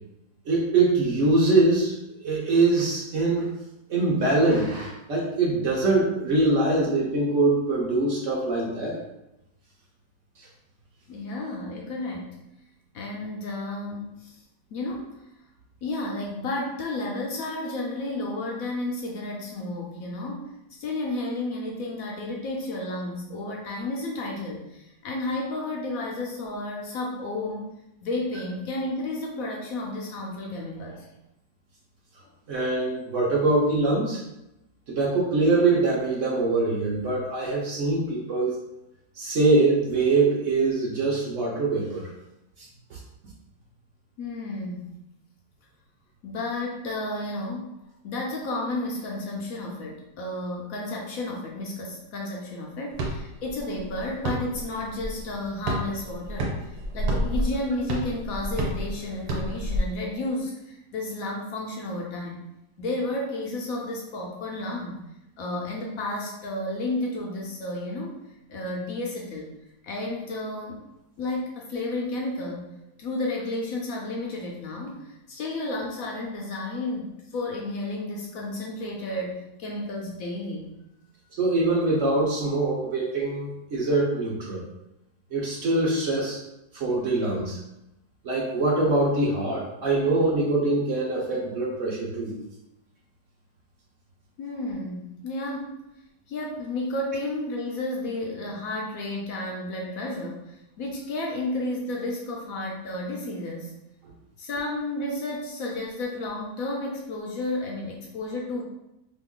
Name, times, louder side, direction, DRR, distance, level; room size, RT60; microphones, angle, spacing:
voice 1, 0.5-1.9 2.2-3.5 3.9-9.0 32.5-34.2 34.9-38.6 39.2-42.1 42.9-43.0 81.4-84.6 85.3-86.4 86.7-87.6 88.2-92.3, right 2 dB, 60° right, -4 dB, 1.0 m, -23 dB
voice 2, 11.1-12.4 12.9-14.4 14.7-15.1 15.8-20.5 20.8-27.6 28.0-31.1 44.2-45.0 46.2-47.8 48.0-62.4 62.8-65.0 65.4-68.2 68.5-69.5 69.8-70.8 71.2-72.7 73.0-80.7 94.4-95.8 96.3-103.8 104.4-108.6, left 2 dB, 70° left, -1 dB, 0.9 m, -32 dB
sound 1, 52.9-59.8, right 1 dB, 80° right, 1.3 m, -30 dB
2.9 x 2.5 x 3.6 m, 0.88 s
omnidirectional pair, 1.7 m